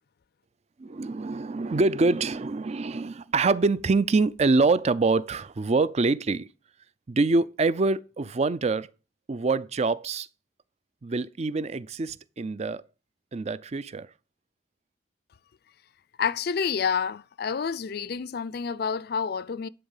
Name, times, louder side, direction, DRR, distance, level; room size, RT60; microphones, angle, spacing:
voice 1, 0.8-6.5 7.1-8.9 9.3-10.3 11.0-12.8 13.3-14.1, right 3 dB, 35° right, 0.4 m, -25 dB
voice 2, 16.2-19.7, left 6 dB, 55° left, 0.4 m, -28 dB
11.0 x 4.0 x 7.2 m
head